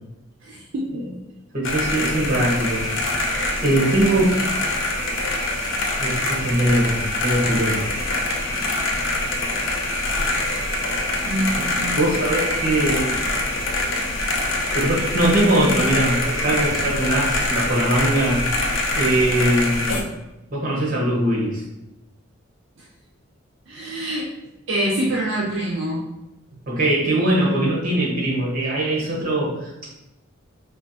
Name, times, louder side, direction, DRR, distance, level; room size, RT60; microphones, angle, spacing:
voice 1, 0.4-0.8 11.2-12.1 23.7-24.3 24.7-26.0, right 1 dB, 65° right, -3 dB, 0.5 m, -25 dB
voice 2, 1.5-2.8 3.3-4.4 6.0-7.8 11.5-13.2 14.7-18.5 19.0-20.0 20.5-21.6 26.7-30.0, right 1 dB, 45° right, -3 dB, 1.0 m, -21 dB
sound 1, 1.6-20.0, left 1 dB, 65° left, 0.5 m, -24 dB
4.3 x 2.3 x 2.6 m, 0.96 s
head